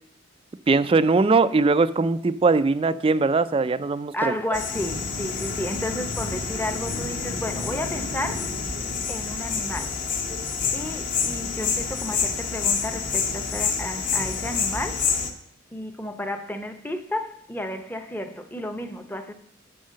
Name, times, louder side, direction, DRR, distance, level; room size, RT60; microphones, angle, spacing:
voice 1, 0.7-4.3, right 3 dB, 25° right, 0.3 m, -20 dB
voice 2, 4.1-8.6 9.1-10.0 10.7-15.2 15.7-19.3, left 1 dB, 10° left, 0.7 m, -32 dB
sound 1, 4.5-15.3, left 5 dB, 40° left, 1.0 m, -28 dB
8.7 x 5.6 x 6.3 m
head